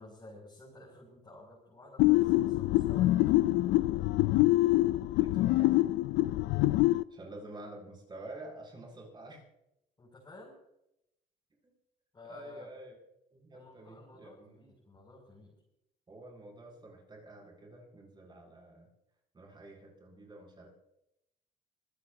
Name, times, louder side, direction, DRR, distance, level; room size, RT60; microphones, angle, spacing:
voice 1, 0.0-3.1 10.0-10.6 12.1-12.7 13.5-15.5, left 2 dB, 25° left, -3 dB, 7.3 m, -52 dB
sound 1, 2.0-7.0, left 17 dB, 85° left, 0.5 m, -25 dB
voice 2, 5.1-5.7 7.1-9.4 12.3-13.0 13.3-14.6 16.1-18.9 19.3-20.7, right 2 dB, 25° right, -2 dB, 7.7 m, -49 dB
26.0 x 16.5 x 2.9 m, 0.83 s
cardioid pair, 110°, 17 cm